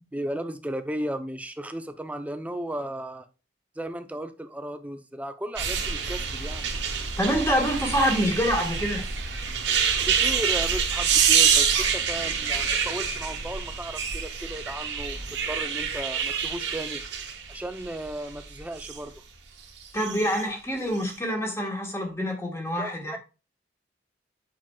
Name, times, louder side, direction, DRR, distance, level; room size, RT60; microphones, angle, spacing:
voice 1, 0.0-3.3 3.8-6.6 9.8-15.2 15.5-17.0 17.5-19.1 22.8-23.2, right 1 dB, 10° right, 0.5 m, -35 dB
sound 1, 5.6-19.0 19.9-20.4 21.0-21.1, right 6 dB, 80° right, 1.3 m, -26 dB
voice 2, 7.2-9.1 19.9-23.2, equal, 15° left, 1.3 m, -26 dB
7.5 x 5.8 x 2.3 m
head